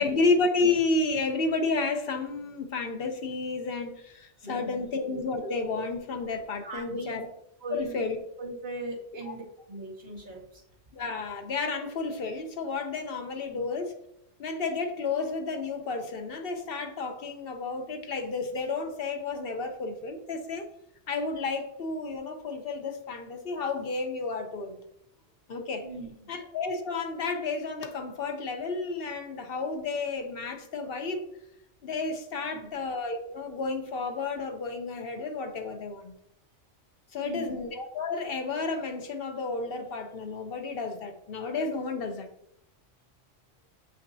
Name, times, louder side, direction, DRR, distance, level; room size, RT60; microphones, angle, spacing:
voice 1, 0.0-7.3 7.7-8.2 9.3-9.4 10.9-13.9 14.4-20.6 21.1-24.8 25.5-25.8 26.3-31.3 31.8-36.1 37.1-42.3, left 3 dB, 55° left, 0.9 m, -31 dB
voice 2, 4.4-4.9 6.6-7.2 7.6-8.1 8.4-10.6 13.5-13.6 25.8-26.3 32.5-32.7 37.2-37.5, right 1 dB, 55° right, 2.4 m, -39 dB
7.4 x 5.9 x 2.7 m
omnidirectional pair, 1.3 m